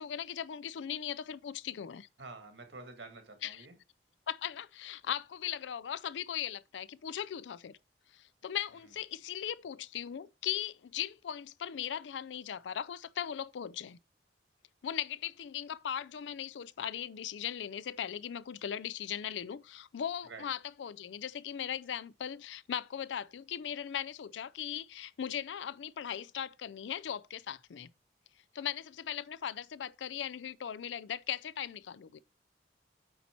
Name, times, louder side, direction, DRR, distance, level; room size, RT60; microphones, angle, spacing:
voice 1, 0.0-2.1 3.4-3.7 4.3-7.8 8.1-14.0 14.8-27.9 28.5-32.2, left 9 dB, 90° left, 0.4 m, -38 dB
voice 2, 2.2-3.7 20.2-20.5, right 3 dB, 85° right, 1.7 m, -48 dB
8.5 x 4.2 x 4.4 m
head